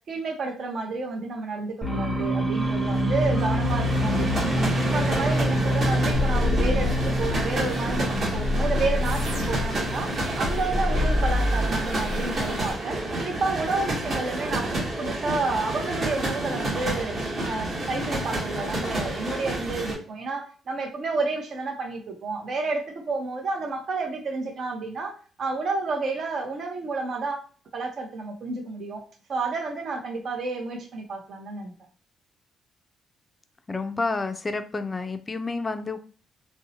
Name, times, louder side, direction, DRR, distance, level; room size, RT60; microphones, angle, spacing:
voice 1, 0.1-4.6 4.9-17.2 17.4-27.4 27.7-29.0 29.3-31.7, right 3 dB, 55° right, 0.6 m, -30 dB
sound 1, 1.8-11.4, left 1 dB, 15° right, 0.8 m, -27 dB
sound 2, 2.5-19.9, right 1 dB, 40° right, 1.0 m, -29 dB
sound 3, 6.1-12.7, left 1 dB, 80° right, 1.0 m, -28 dB
voice 2, 33.7-36.0, left 3 dB, 25° left, 0.3 m, -29 dB
2.6 x 2.0 x 2.8 m
cardioid pair, 90°, 0 cm